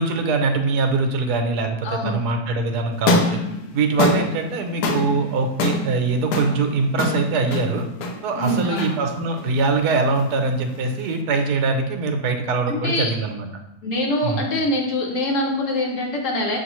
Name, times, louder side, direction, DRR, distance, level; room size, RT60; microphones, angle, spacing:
voice 1, 0.0-3.4 3.7-7.8 8.2-13.5 14.2-14.4, right 3 dB, 85° right, 5 dB, 1.1 m, -22 dB
voice 2, 1.8-2.2 8.3-9.0 12.7-13.1 13.8-16.6, left 1 dB, 60° left, 0 dB, 0.9 m, -24 dB
sound 1, 2.9-11.2, left 2 dB, 85° left, 1.2 m, -26 dB
6.5 x 2.5 x 3.0 m, 0.89 s
omnidirectional pair, 1.7 m